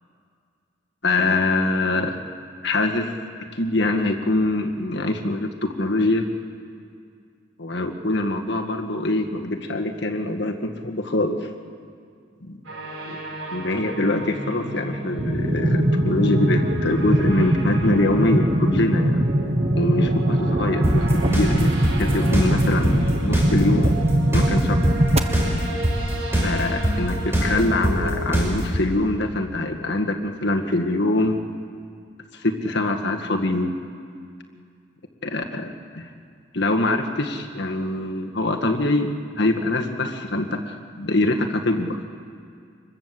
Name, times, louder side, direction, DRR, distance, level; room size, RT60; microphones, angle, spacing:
voice 1, 1.0-2.2 2.6-3.1 3.5-6.3 7.6-11.5 12.5-12.6 13.1-13.2 13.5-19.2 19.7-23.9 24.3-24.8 26.4-31.4 32.3-33.7 35.2-36.1 36.5-42.0, left 2 dB, 55° left, 3 dB, 1.9 m, -24 dB
sound 1, 12.6-28.3, right 1 dB, 75° right, 6.0 m, -32 dB
sound 2, 15.2-25.2, right 1 dB, 30° right, 1.2 m, -22 dB
sound 3, 20.8-28.8, right 1 dB, 10° right, 6.0 m, -21 dB
26.5 x 21.0 x 7.8 m, 2.3 s
head